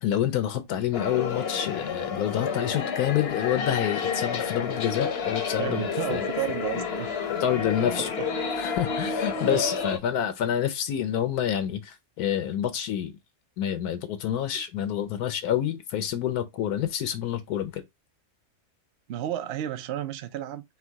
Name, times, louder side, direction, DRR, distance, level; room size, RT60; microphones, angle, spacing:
voice 1, 0.0-5.8 6.1-6.3 7.4-8.1 8.6-13.2 13.6-17.8, left 10 dB, 80° left, 1.2 m, -28 dB
sound 1, 0.9-10.0, left 5 dB, 50° left, 0.9 m, -30 dB
voice 2, 5.6-7.2 8.2-8.3 9.5-9.6 14.5-14.6 19.1-20.6, right 11 dB, 70° right, 0.6 m, -32 dB
4.6 x 2.2 x 4.4 m
omnidirectional pair, 1.6 m